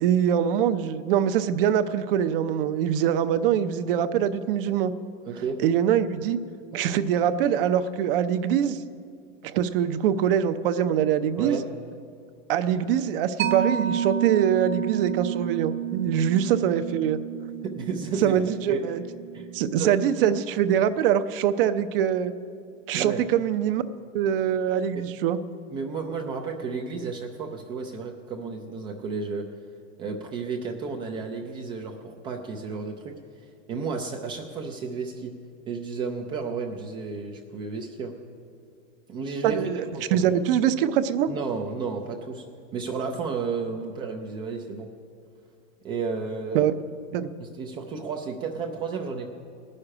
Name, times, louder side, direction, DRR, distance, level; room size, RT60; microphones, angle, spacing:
voice 1, 0.0-4.9 5.6-6.4 6.7-8.8 9.4-11.6 12.5-17.2 18.2-19.0 19.5-22.3 22.9-23.8 24.1-25.4 39.4-41.3 46.5-46.7 47.1-47.3, right 9 dB, 45° right, 10 dB, 0.7 m, -23 dB
voice 2, 5.3-5.6 11.4-11.6 16.1-16.3 17.6-18.4 18.7-18.8 19.3-19.9 22.9-23.2 25.7-29.4 30.0-33.1 33.7-35.3 35.7-38.1 39.1-40.3 41.3-42.5 42.7-44.9 45.8-46.6 47.4-49.3, right 5 dB, 15° right, 2 dB, 0.4 m, -32 dB
Mallet percussion, 13.4-20.5, right 10 dB, 85° right, 1.5 m, -31 dB
17.5 x 6.6 x 9.8 m, 2.4 s
supercardioid pair, 150°, 38 cm